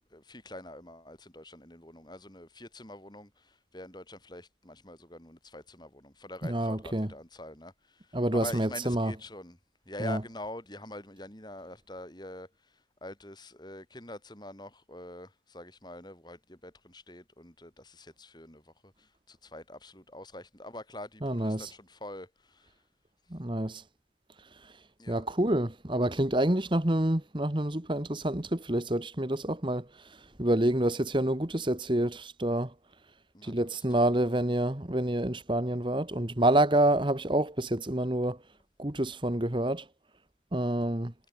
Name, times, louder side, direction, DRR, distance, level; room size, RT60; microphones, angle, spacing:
voice 1, 0.1-8.0 8.3-9.6 9.9-12.5 13.0-22.7 25.0-25.2 33.3-33.5 34.0-34.2, left 1 dB, 25° left, 4.7 m, -45 dB
voice 2, 6.4-7.1 8.1-9.1 10.0-10.2 21.2-21.7 23.3-23.8 25.1-29.8 30.4-32.7 33.4-38.4 38.8-39.8 40.5-41.1, right 1 dB, 25° right, 1.5 m, -27 dB
head